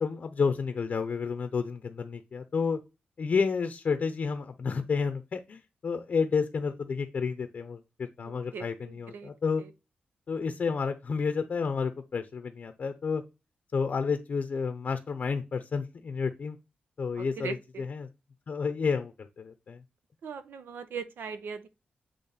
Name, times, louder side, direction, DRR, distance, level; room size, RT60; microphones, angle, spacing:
voice 1, 0.0-2.8 3.2-9.6 10.3-13.2 13.7-16.6 17.0-17.6 17.9-18.1 18.5-19.8, left 5 dB, 50° left, 0.7 m, -30 dB
voice 2, 8.2-9.3 9.6-9.7 17.2-17.9 20.2-21.7, right 6 dB, 85° right, 0.8 m, -40 dB
8.5 x 3.2 x 4.1 m
wide cardioid pair, 130°, 3 cm